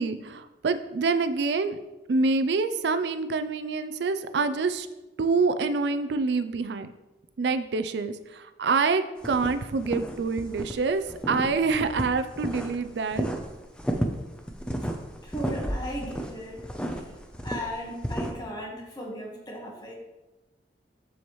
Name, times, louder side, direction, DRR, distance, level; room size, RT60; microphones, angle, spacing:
voice 1, 0.0-1.8 2.1-4.9 5.2-6.9 7.4-13.3, right 4 dB, 80° right, 11 dB, 0.4 m, -26 dB
sound 1, 9.2-10.7 11.0-12.8 13.1-18.3, right 1 dB, 5° left, 0.5 m, -32 dB
voice 2, 15.2-16.7 17.4-19.9, equal, 25° left, -1 dB, 1.3 m, -36 dB
7.1 x 7.0 x 3.1 m, 1.0 s
head